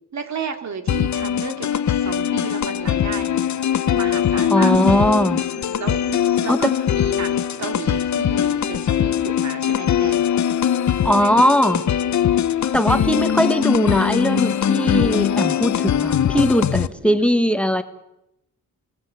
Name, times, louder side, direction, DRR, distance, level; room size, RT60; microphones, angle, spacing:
voice 1, 0.1-4.7 5.5-10.2 11.2-11.3 16.7-17.3, right 5 dB, 55° right, 6 dB, 2.4 m, -33 dB
sound 1, 0.9-16.9, left 9 dB, 60° left, 0.8 m, -21 dB
voice 2, 4.5-5.4 6.5-6.7 11.0-11.8 12.7-17.8, equal, 5° left, 9 dB, 1.2 m, -19 dB
29.5 x 18.0 x 6.9 m, 0.86 s
wide cardioid pair, 170°, 32 cm